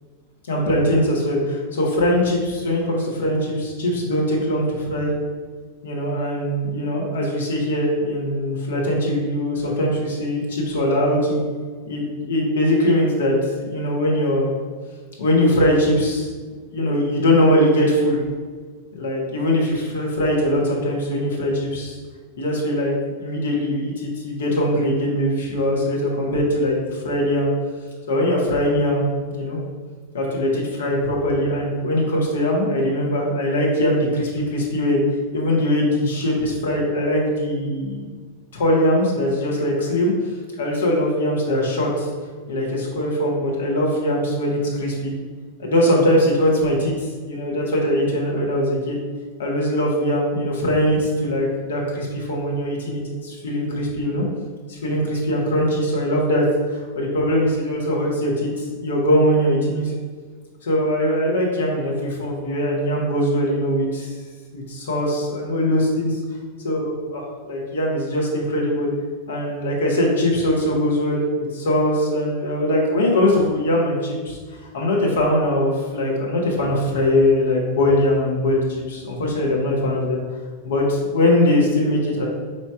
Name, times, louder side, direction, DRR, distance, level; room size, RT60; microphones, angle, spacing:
voice 1, 0.5-5.1 5.8-11.4 11.9-14.5 15.2-16.3 16.7-18.2 18.9-22.0 22.4-27.5 28.1-29.0 29.3-29.6 30.1-35.0 35.3-38.0 38.5-40.1 40.6-42.1 42.5-45.1 45.6-49.0 49.4-54.2 54.7-56.4 56.7-59.9 60.6-64.1 64.5-66.2 66.6-68.9 69.3-74.4 74.7-80.2 80.6-82.3, left 1 dB, 65° left, -3 dB, 1.1 m, -21 dB
4.7 x 2.8 x 3.5 m, 1.5 s
figure-of-eight pair, 90°, 0 cm